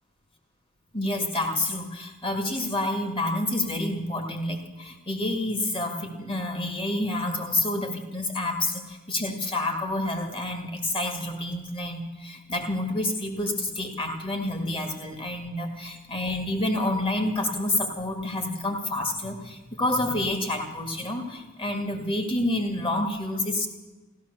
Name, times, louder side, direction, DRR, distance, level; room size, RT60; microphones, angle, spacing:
voice 1, 0.9-23.7, left 1 dB, 25° left, 5 dB, 1.9 m, -28 dB
14.5 x 13.5 x 6.9 m, 1.2 s
head